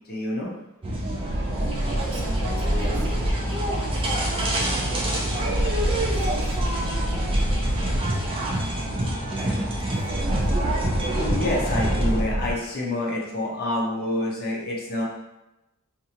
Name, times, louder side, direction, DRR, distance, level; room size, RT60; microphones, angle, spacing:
voice 1, 0.1-0.5 10.6-10.7 11.1-15.0, left 1 dB, 45° left, -3 dB, 0.7 m, -28 dB
sound 1, 0.8-12.2, right 1 dB, 25° right, 0.4 m, -28 dB
sound 2, 1.3-12.5, right 1 dB, 90° right, 0.9 m, -28 dB
voice 2, 1.9-3.1 3.5-3.6 4.4-6.6 7.4-7.5 8.3-8.4 9.3-10.6, right 3 dB, 65° right, -2 dB, 0.6 m, -40 dB
sound 3, 2.2-8.0, equal, 80° left, 0.7 m, -31 dB
2.6 x 2.4 x 2.8 m, 0.95 s
head